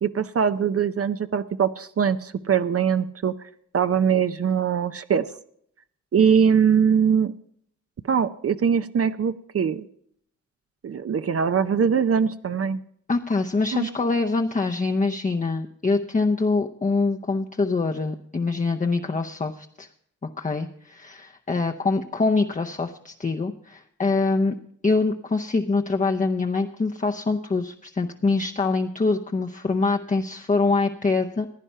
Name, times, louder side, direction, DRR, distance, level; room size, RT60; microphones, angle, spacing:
voice 1, 0.0-3.3 3.7-5.3 6.1-7.3 8.1-9.8 10.8-12.8 13.7-13.9, right 7 dB, 50° right, 11 dB, 0.6 m, -22 dB
voice 2, 13.1-19.9 20.4-24.6 24.8-31.5, left 3 dB, 25° left, 4 dB, 0.7 m, -24 dB
15.5 x 9.9 x 5.6 m, 0.69 s
cardioid pair, 65°, 31 cm